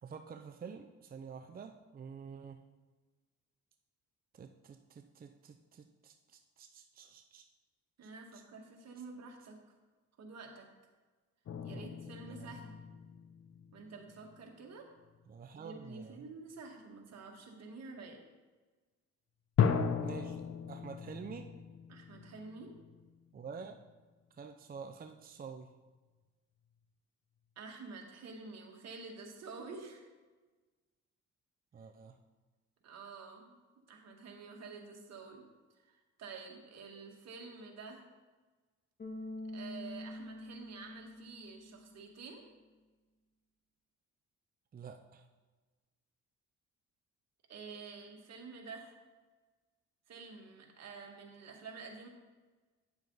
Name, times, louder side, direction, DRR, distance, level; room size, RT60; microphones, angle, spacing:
voice 1, 0.0-2.6 4.3-7.4 8.3-8.4 11.7-11.9 12.3-12.5 15.3-16.3 20.0-20.4 20.7-21.5 23.3-23.8 24.4-25.7 31.7-32.2 44.7-45.2, right 6 dB, 30° right, 5 dB, 0.6 m, -48 dB
voice 2, 8.0-9.6 10.2-10.7 11.6-12.8 13.7-14.9 15.6-18.2 21.9-22.7 27.6-30.1 32.8-33.5 33.9-35.4 35.8-38.0 39.5-42.4 47.5-48.9 50.1-52.1, right 4 dB, 60° right, 1 dB, 1.9 m, -49 dB
sound 1, 11.5-14.4 15.0-15.3 19.6-23.9, left 7 dB, 55° left, 0.8 m, -36 dB
Bass guitar, 39.0-42.1, left 1 dB, 35° left, 2.5 m, -45 dB
9.3 x 7.0 x 4.0 m, 1.3 s
cardioid pair, 90°, 30 cm